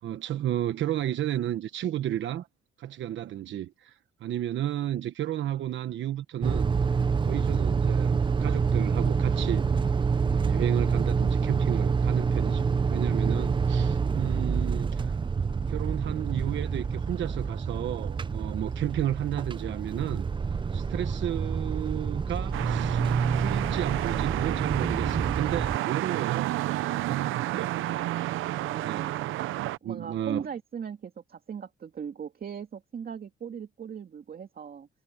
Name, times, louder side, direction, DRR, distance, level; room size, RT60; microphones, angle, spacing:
voice 1, 0.0-2.5 2.8-6.7 7.2-8.1 8.4-9.7 10.3-15.2 15.7-20.3 20.7-23.0 23.4-26.6 26.9-27.8 28.8-29.1 29.8-30.5, right 12 dB, 70° right, 1.1 m, -33 dB
sound 1, 6.4-25.8, right 5 dB, 25° right, 0.5 m, -27 dB
sound 2, 22.5-29.8, right 15 dB, 90° right, 0.7 m, -30 dB
voice 2, 28.6-29.3 29.8-34.9, right 7 dB, 50° right, 2.2 m, -39 dB
cardioid pair, 90°, 20 cm